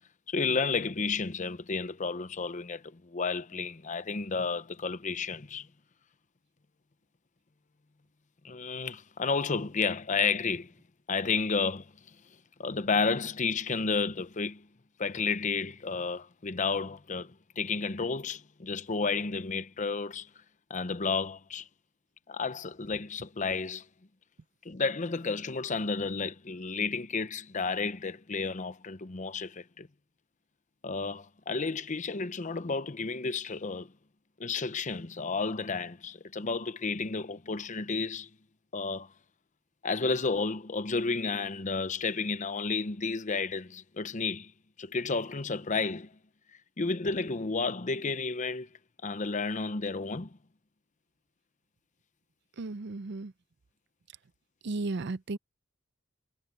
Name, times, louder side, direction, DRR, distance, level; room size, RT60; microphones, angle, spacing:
voice 1, 0.3-5.7 8.4-10.7 11.1-12.2 12.6-14.7 15.0-20.3 20.7-21.7 22.3-23.9 24.6-29.9 30.8-33.9 34.4-38.3 38.7-39.1 39.8-44.5 44.8-46.1 46.8-48.7 49.0-50.4, left 4 dB, 40° left, 0.8 m, -32 dB
voice 2, 52.6-53.3 54.6-55.4, right 3 dB, 55° right, 0.6 m, -34 dB
head